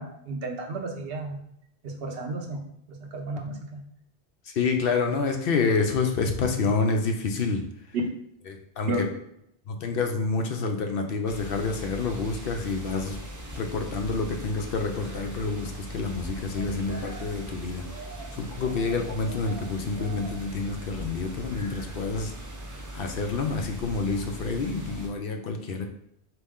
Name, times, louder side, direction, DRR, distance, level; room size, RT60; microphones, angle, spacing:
voice 1, 0.0-1.4 1.8-2.6 2.9-3.8 8.9-9.0, right 2 dB, 65° right, 2 dB, 0.9 m, -33 dB
voice 2, 4.5-7.6 8.8-8.9 9.7-13.2 13.5-17.8 18.3-22.3 22.9-25.9, left 4 dB, 65° left, 4 dB, 0.7 m, -28 dB
sound 1, 11.3-25.1, right 1 dB, 25° right, 0.5 m, -39 dB
4.2 x 3.0 x 3.5 m, 0.73 s
omnidirectional pair, 1.1 m